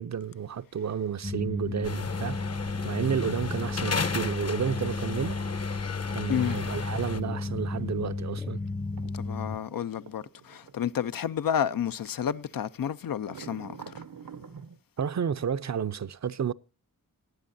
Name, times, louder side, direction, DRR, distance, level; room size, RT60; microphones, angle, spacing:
voice 1, 0.0-2.4 2.8-5.4 6.1-8.6 15.0-16.5, right 7 dB, 55° right, 0.6 m, -31 dB
sound 1, 1.2-9.6, left 3 dB, 15° left, 0.6 m, -33 dB
sound 2, 1.8-7.2, left 4 dB, 50° left, 0.9 m, -35 dB
voice 2, 6.3-6.7 9.1-14.0, left 9 dB, 80° left, 0.6 m, -31 dB
sound 3, 6.8-11.9 12.3-12.5 13.2-14.8, right 7 dB, 85° right, 1.0 m, -49 dB
18.5 x 9.8 x 2.6 m
wide cardioid pair, 100°, 33 cm